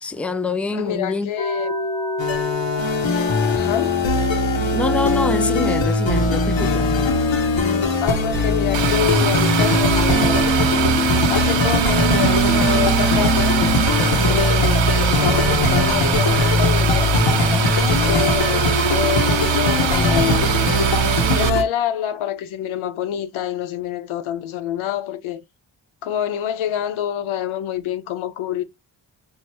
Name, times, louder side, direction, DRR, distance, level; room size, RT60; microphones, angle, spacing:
voice 1, 0.0-1.3 4.7-7.0, left 3 dB, 5° left, 0.4 m, -25 dB
voice 2, 0.7-1.8 3.5-4.1 8.0-10.5 11.3-13.5 14.3-17.1 18.1-20.6 21.3-25.4 26.0-28.6, left 10 dB, 90° left, 0.6 m, -26 dB
sound 1, 1.4-13.8 14.2-14.3 14.7-17.3, left 2 dB, 40° left, 1.4 m, -25 dB
sound 2, 2.2-21.6, left 1 dB, 70° left, 1.2 m, -21 dB
sound 3, 8.7-21.5, right 11 dB, 70° right, 0.6 m, -23 dB
4.4 x 2.7 x 3.0 m
cardioid pair, 50°, 47 cm